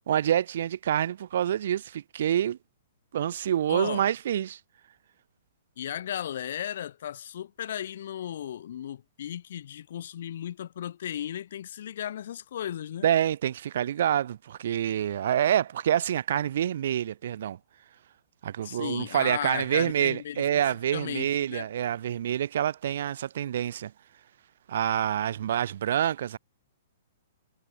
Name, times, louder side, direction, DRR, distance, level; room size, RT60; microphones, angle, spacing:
voice 1, 0.1-2.6 3.1-4.6 13.0-17.6 18.4-23.9 24.7-26.4, right 10 dB, 60° right, 0.4 m, -27 dB
voice 2, 3.7-4.0 5.8-13.1 18.6-20.4 20.9-21.7, left 10 dB, 60° left, 2.4 m, -35 dB
hypercardioid pair, 155°, 0 cm